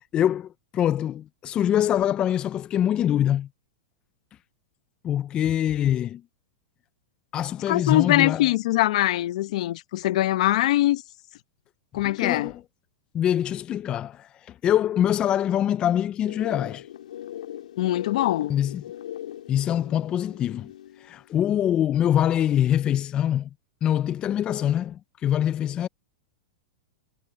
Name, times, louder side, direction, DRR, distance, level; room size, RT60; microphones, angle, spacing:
voice 1, 0.0-3.5 5.0-6.2 7.3-8.5 12.0-12.6 13.1-16.9 18.5-18.8 19.5-20.7 21.0-23.5 23.8-25.9, left 10 dB, 25° left, 0.4 m, -24 dB
voice 2, 7.7-11.0 11.9-12.5 17.8-18.5, left 15 dB, 65° left, 1.0 m, -22 dB
sound 1, 16.3-21.2, left 11 dB, 85° left, 1.8 m, -39 dB
supercardioid pair, 145°, 4 cm